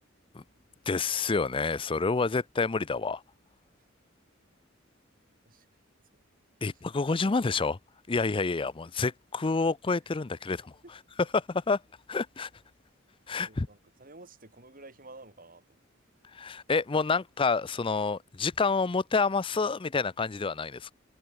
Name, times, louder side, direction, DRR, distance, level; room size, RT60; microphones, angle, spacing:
voice 1, 0.9-3.2 6.6-7.8 8.1-10.7 11.3-11.8 12.1-12.5 13.3-13.7 16.3-20.9, left 4 dB, 25° left, 0.5 m, -28 dB
voice 2, 13.3-15.8, right 2 dB, 45° right, 7.1 m, -51 dB
head